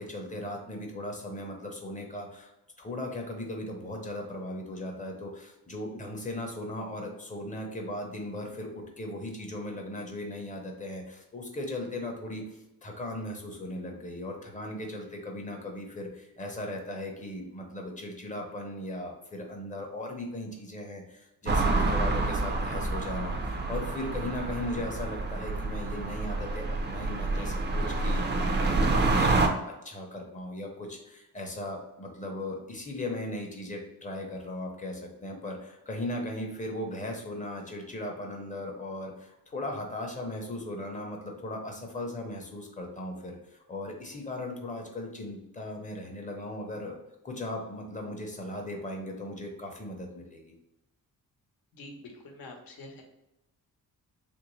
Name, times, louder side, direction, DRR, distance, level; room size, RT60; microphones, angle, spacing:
voice 1, 0.0-2.5 2.8-29.5 29.8-47.0 47.2-50.5, left 1 dB, 20° left, 1 dB, 0.7 m, -38 dB
sound 1, 21.5-29.5, right 3 dB, 30° right, 0.4 m, -28 dB
voice 2, 51.7-53.0, left 2 dB, 70° left, 2 dB, 0.9 m, -46 dB
3.2 x 2.6 x 3.0 m, 0.94 s
cardioid pair, 115°, 36 cm